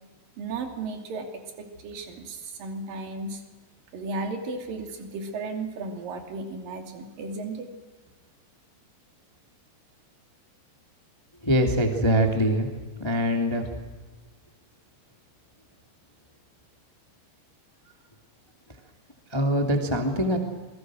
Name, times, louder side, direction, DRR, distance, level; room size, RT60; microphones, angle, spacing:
voice 1, 0.4-3.4 3.9-7.7, right 3 dB, 50° right, 4 dB, 4.1 m, -35 dB
voice 2, 11.4-12.7 13.0-13.7 19.3-20.4, equal, 15° left, 3 dB, 0.9 m, -23 dB
27.0 x 22.5 x 6.4 m, 1.3 s
omnidirectional pair, 5.5 m